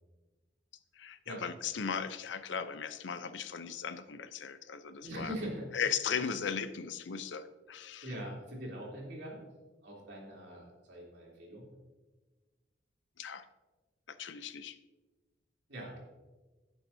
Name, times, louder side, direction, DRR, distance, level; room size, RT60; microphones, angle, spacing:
voice 1, 1.0-5.3 5.7-8.1 13.2-13.4 14.1-14.8, left 7 dB, 75° left, 12 dB, 0.6 m, -37 dB
voice 2, 5.0-5.7 8.0-9.5 9.8-11.6 15.7-16.0, equal, 65° right, -4 dB, 3.3 m, -42 dB
16.0 x 7.1 x 2.7 m, 1.2 s
head